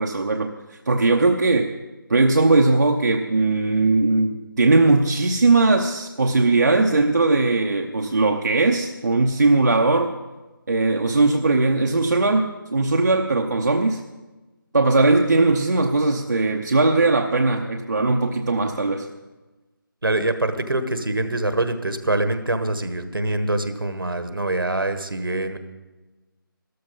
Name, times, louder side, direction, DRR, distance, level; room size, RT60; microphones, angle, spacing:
voice 1, 0.0-1.7 2.1-10.1 10.7-14.0 14.7-19.1, right 3 dB, 55° right, 3 dB, 0.8 m, -19 dB
voice 2, 20.0-25.6, right 2 dB, 70° right, 10 dB, 1.4 m, -24 dB
13.5 x 13.0 x 5.3 m, 1.2 s
figure-of-eight pair, 160°, 12 cm